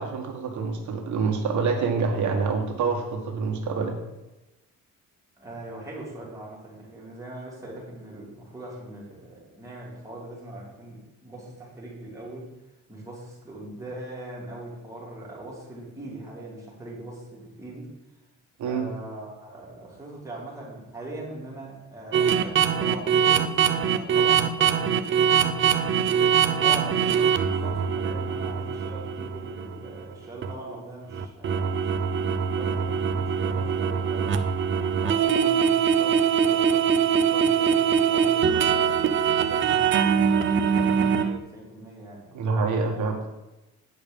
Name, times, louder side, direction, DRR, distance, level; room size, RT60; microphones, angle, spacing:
voice 1, 0.0-4.0 18.6-18.9 42.3-43.1, right 4 dB, 70° right, 2 dB, 1.7 m, -26 dB
voice 2, 5.4-12.5 12.9-17.9 18.7-25.8 26.4-34.4 34.9-39.0 39.3-40.5 40.8-43.1, right 1 dB, 10° right, -5 dB, 3.1 m, -41 dB
sound 1, 22.1-30.0 30.4-30.5 31.1-41.4, right 7 dB, 40° right, 0.6 m, -23 dB
9.3 x 5.3 x 7.0 m, 1.0 s
cardioid pair, 160°, 31 cm